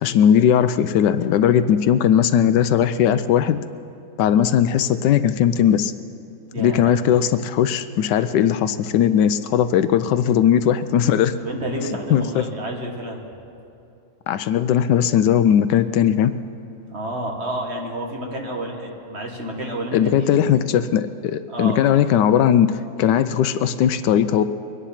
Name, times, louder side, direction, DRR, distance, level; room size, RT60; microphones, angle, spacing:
voice 1, 0.0-3.6 4.2-5.9 6.6-11.3 12.1-12.4 14.3-16.3 19.9-24.4, left 9 dB, 80° left, 12 dB, 1.2 m, -18 dB
voice 2, 6.5-6.9 11.4-13.2 16.9-20.4 21.5-21.8, right 1 dB, 40° right, 1 dB, 1.8 m, -30 dB
23.0 x 10.0 x 5.8 m, 2.6 s
omnidirectional pair, 1.9 m